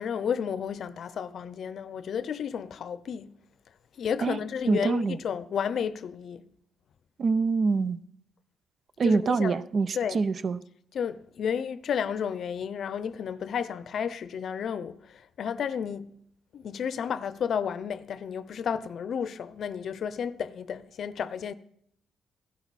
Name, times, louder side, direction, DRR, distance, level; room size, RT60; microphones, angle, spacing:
voice 1, 0.0-3.3 4.0-6.4 9.0-9.6 9.9-10.2 10.9-16.1 16.5-21.5, left 7 dB, 60° left, 0.6 m, -32 dB
voice 2, 4.7-5.2 7.2-8.0 9.0-10.6, right 4 dB, 45° right, 0.6 m, -25 dB
15.5 x 11.5 x 4.2 m
cardioid pair, 90°, 0 cm